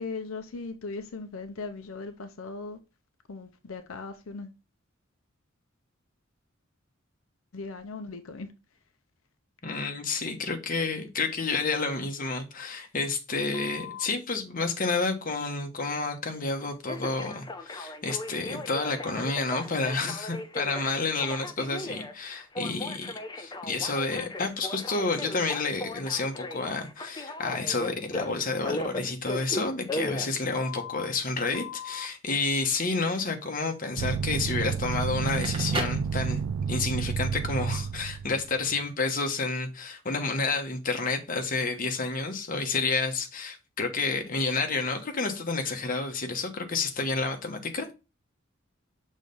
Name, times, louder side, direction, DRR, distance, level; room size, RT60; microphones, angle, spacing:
voice 1, 0.0-2.8 3.3-4.5 7.5-8.5, left 3 dB, 85° left, 0.6 m, -38 dB
voice 2, 9.6-47.9, left 3 dB, 45° left, 1.2 m, -30 dB
Telephone, 13.5-14.1 16.9-31.1 31.5-32.1, left 2 dB, 20° left, 0.7 m, -37 dB
sound 1, 34.0-38.5, right 6 dB, 85° right, 0.3 m, -30 dB
Crackle, 35.1-36.8, right 2 dB, 25° right, 1.2 m, -35 dB
6.2 x 3.2 x 5.3 m
head